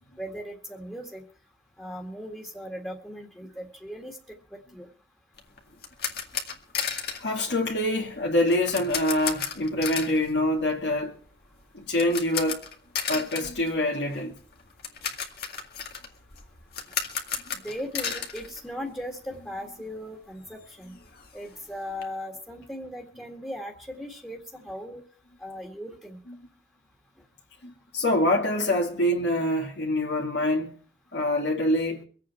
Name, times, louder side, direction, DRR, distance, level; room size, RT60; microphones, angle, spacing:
voice 1, 0.2-1.2 1.8-4.2 4.5-4.9 17.5-21.0 21.3-25.0 25.4-26.2, equal, 10° left, 1.9 m, -38 dB
sound 1, 5.4-19.3 19.6-19.7 20.1-20.2 20.5-22.0, left 7 dB, 60° left, 2.2 m, -35 dB
voice 2, 7.2-11.2 11.7-12.7 13.1-14.4 26.3-26.5 27.6-30.8 31.1-32.0, left 1 dB, 80° left, 2.6 m, -25 dB
24.5 x 8.6 x 4.5 m
head